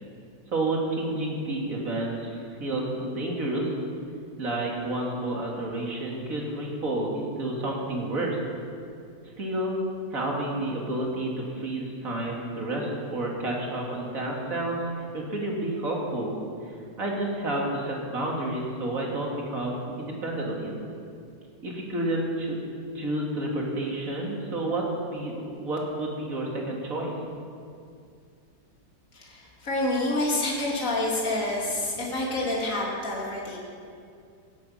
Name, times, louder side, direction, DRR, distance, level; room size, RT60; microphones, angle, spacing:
voice 1, 0.5-3.7 4.4-8.4 9.4-9.8 10.1-14.8 15.1-16.4 16.7-20.7 21.6-22.6 22.9-27.1, right 1 dB, 50° right, -2 dB, 2.9 m, -30 dB
voice 2, 29.1-33.6, left 2 dB, 50° left, -4 dB, 3.2 m, -28 dB
17.0 x 12.0 x 5.8 m, 2.4 s
omnidirectional pair, 1.9 m